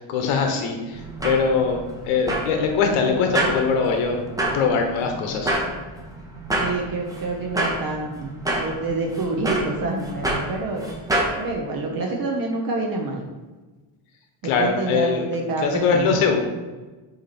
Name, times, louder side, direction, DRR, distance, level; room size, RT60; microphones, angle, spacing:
voice 1, 0.0-4.2 4.5-5.6 14.4-15.2 15.6-16.4, left 5 dB, 90° left, 4 dB, 1.0 m, -22 dB
sound 1, 0.9-11.4, right 1 dB, 5° right, 0.5 m, -28 dB
voice 2, 6.6-8.3 8.6-10.9 11.4-13.2 14.4-16.2, right 3 dB, 45° right, 0 dB, 0.8 m, -27 dB
7.9 x 3.0 x 4.2 m, 1.2 s
cardioid pair, 180°, 50 cm